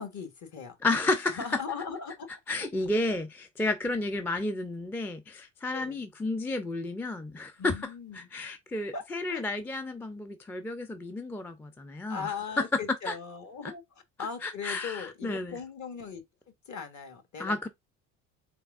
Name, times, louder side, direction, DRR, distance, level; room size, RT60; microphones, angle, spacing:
voice 1, 0.0-0.8 1.3-2.7 5.7-6.0 7.6-8.3 8.9-9.4 12.1-13.8 14.2-16.2 16.7-17.7, left 6 dB, 45° left, 1.2 m, -39 dB
voice 2, 0.8-1.4 2.5-12.6 13.1-13.2 14.4-15.6 17.4-17.7, left 2 dB, 5° left, 0.3 m, -32 dB
3.5 x 3.3 x 2.4 m
hypercardioid pair, 65°, 40 cm